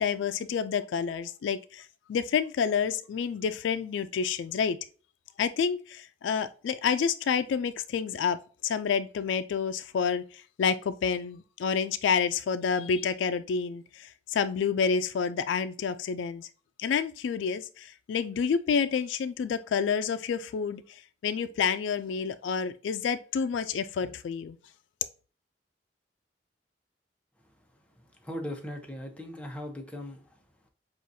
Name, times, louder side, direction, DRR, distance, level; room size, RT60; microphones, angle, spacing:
voice 1, 0.0-4.8 5.4-8.4 8.6-10.2 10.6-16.5 16.8-20.8 21.2-24.6, left 6 dB, 90° left, 0.3 m, -29 dB
voice 2, 28.2-30.2, left 1 dB, 5° left, 0.7 m, -38 dB
6.1 x 2.4 x 2.7 m
head